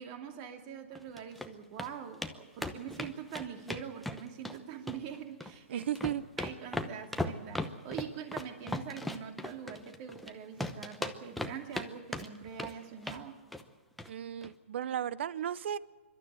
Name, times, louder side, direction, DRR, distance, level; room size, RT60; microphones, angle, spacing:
voice 1, 0.0-5.9 6.4-13.4, right 8 dB, 35° right, 6 dB, 2.4 m, -44 dB
sound 1, 0.9-1.5 1.8-1.9 2.2-2.3 2.6-4.6 4.9-5.5 5.8-10.3 10.6-11.9 12.1-12.7 13.0-13.2 13.5-13.7 14.0-14.1 14.4-14.5, left 1 dB, ahead, 0.8 m, -37 dB
voice 2, 5.7-6.2 14.1-15.8, right 10 dB, 60° right, 19 dB, 0.7 m, -35 dB
28.0 x 12.5 x 8.9 m, 1.3 s
hypercardioid pair, 155°, 7 cm